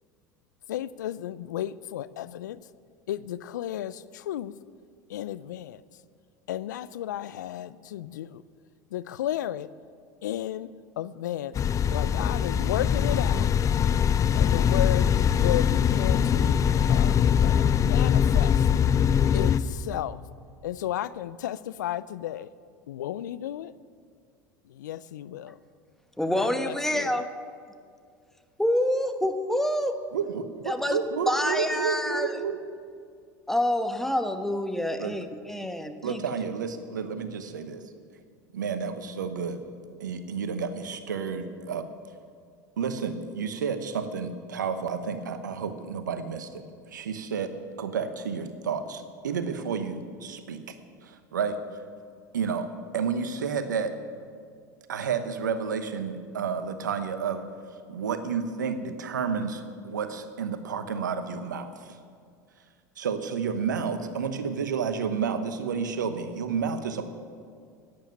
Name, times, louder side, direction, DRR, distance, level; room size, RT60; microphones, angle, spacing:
voice 1, 0.7-2.6 3.1-4.5 5.1-5.8 6.5-8.4 8.9-9.7 10.2-10.7 11.0-11.5 11.9-13.5 14.3-15.1 15.4-16.6 16.9-18.7 19.3-20.2 20.6-22.5 22.9-23.7 24.7-25.6 26.4-27.2, left 12 dB, 80° left, 18 dB, 0.4 m, -33 dB
sound 1, 11.6-19.6, left 8 dB, 35° left, 0.7 m, -22 dB
voice 2, 26.2-27.3 28.6-30.0 30.6-31.0 31.3-32.4 33.5-36.2, left 1 dB, 5° left, 8 dB, 1.2 m, -27 dB
voice 3, 30.1-32.6 35.0-35.1 36.0-37.8 38.5-39.6 40.0-41.8 42.8-46.6 46.9-50.6 51.0-51.6 52.3-52.7 52.9-53.9 54.9-57.4 57.9-61.7 63.0-67.0, right 6 dB, 85° right, 10 dB, 1.0 m, -31 dB
11.5 x 9.8 x 9.3 m, 2.2 s
hypercardioid pair, 80°, 10 cm